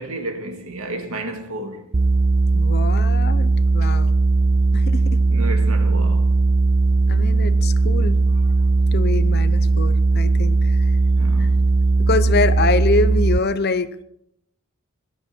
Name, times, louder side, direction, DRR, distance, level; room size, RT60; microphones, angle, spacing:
voice 1, 0.0-1.9 3.8-3.9 5.3-6.4 11.2-11.6, right 2 dB, 75° right, 2.1 m, -32 dB
sound 1, 1.9-13.4, right 3 dB, 35° right, 0.5 m, -18 dB
voice 2, 2.5-4.1 4.7-5.2 7.1-8.5 8.9-10.9 11.4-11.5 12.1-14.0, left 3 dB, 45° left, 0.7 m, -25 dB
18.0 x 12.5 x 4.5 m
head